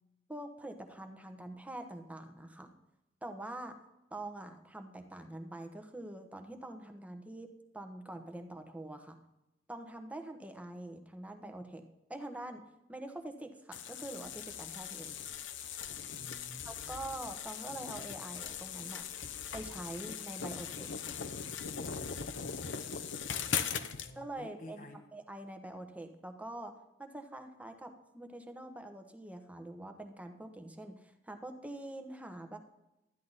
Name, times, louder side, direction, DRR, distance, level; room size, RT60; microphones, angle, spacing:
voice 1, 0.3-2.7 3.2-3.7 4.1-7.5 7.7-9.2 9.7-11.8 12.1-12.6 12.9-15.1 16.6-19.0 19.5-20.9 24.2-26.7 27.0-32.6, right 1 dB, 10° right, 6 dB, 1.1 m, -45 dB
sound 1, 13.7-24.1, left 7 dB, 70° left, 0.7 m, -40 dB
voice 2, 16.0-17.1 23.4-25.1, left 1 dB, 45° left, 4 dB, 0.9 m, -52 dB
12.5 x 10.5 x 4.1 m, 0.91 s
head